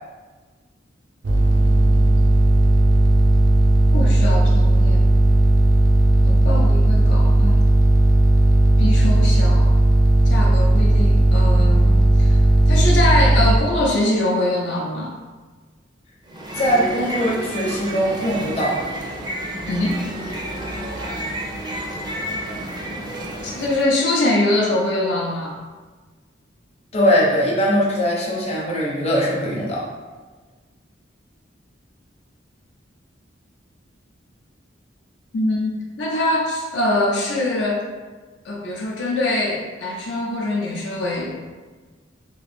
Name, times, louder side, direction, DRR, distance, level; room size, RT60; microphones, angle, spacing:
sound 1, 1.2-13.6, right 1 dB, 85° right, 0.5 m, -15 dB
voice 1, 3.9-5.0 6.2-7.6 8.8-9.7 10.3-12.4 12.7-15.1 19.7-20.0 21.1-21.2 23.4-25.6 35.3-37.8 38.4-41.3, left 1 dB, 70° left, -2 dB, 0.5 m, -23 dB
sound 2, 16.2-23.9, right 1 dB, 25° right, 0.4 m, -30 dB
voice 2, 16.6-18.8 26.9-29.8, equal, 35° left, -4 dB, 0.7 m, -21 dB
3.0 x 2.4 x 3.3 m, 1.4 s
head